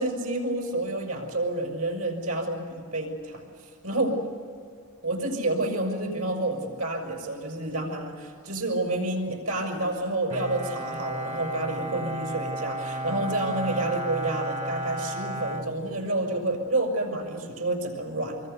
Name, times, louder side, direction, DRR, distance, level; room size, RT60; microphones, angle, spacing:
voice 1, 0.0-3.5 3.8-4.2 5.0-18.5, right 2 dB, 80° right, 2 dB, 6.3 m, -29 dB
Bowed string instrument, 10.3-16.5, right 1 dB, 30° right, 1.1 m, -34 dB
26.0 x 24.0 x 6.9 m, 2.2 s
head